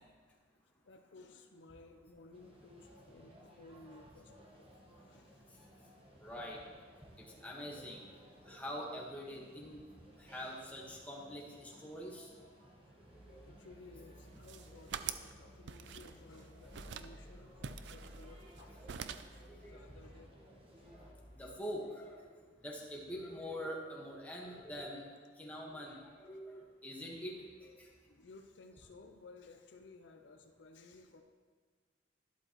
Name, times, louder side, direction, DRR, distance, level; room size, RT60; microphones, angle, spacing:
voice 1, 0.8-4.7 5.1-5.4 8.5-8.6 11.5-11.9 13.4-18.8 19.1-20.3 20.8-20.9 22.6-22.8 26.3-26.4 28.1-31.2, left 3 dB, 75° left, 5 dB, 0.7 m, -57 dB
sound 1, 2.3-21.1, equal, 30° right, 1.5 m, -60 dB
voice 2, 6.2-6.6 7.4-8.0 8.5-9.8 10.2-12.3 19.5-20.0 21.4-22.2 22.6-25.0 25.4-27.9, equal, 10° left, -3 dB, 1.5 m, -44 dB
sound 2, 13.1-20.2 20.8-21.5, equal, 30° left, 3.3 m, -57 dB
sound 3, 14.3-15.3 15.7-16.4 16.7-17.1 17.6-18.6 18.9-19.4, right 8 dB, 70° right, 0.4 m, -44 dB
12.0 x 11.0 x 3.1 m, 1.5 s
head